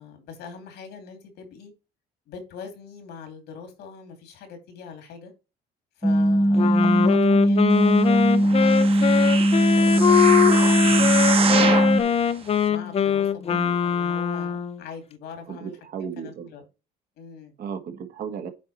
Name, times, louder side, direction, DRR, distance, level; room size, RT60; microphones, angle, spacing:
voice 1, 0.0-1.7 2.3-5.3 6.0-12.2 12.7-15.8 16.0-16.6 17.2-17.5, left 6 dB, 80° left, 2.6 m, -42 dB
sound 1, 6.0-12.0, equal, ahead, 0.7 m, -19 dB
Wind instrument woodwind instrument, 6.6-14.8, left 8 dB, 35° left, 0.6 m, -22 dB
sound 2, 8.4-12.0 12.6-12.7, right 5 dB, 35° right, 1.2 m, -26 dB
voice 2, 13.5-13.8 15.5-16.5 17.6-18.5, right 7 dB, 60° right, 1.5 m, -35 dB
8.3 x 4.0 x 4.2 m
cardioid pair, 110°, 17 cm